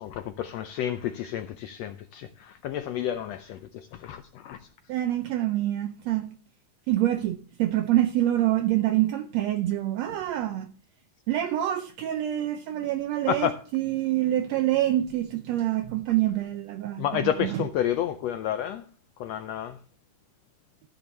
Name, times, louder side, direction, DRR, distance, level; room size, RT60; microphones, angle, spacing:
voice 1, 0.0-4.6 13.3-13.5 17.0-18.8 19.2-19.8, left 10 dB, 85° left, 1.4 m, -30 dB
voice 2, 4.9-6.3 6.9-10.7 11.3-17.6, right 13 dB, 80° right, 1.5 m, -26 dB
14.0 x 5.4 x 6.9 m
omnidirectional pair, 3.7 m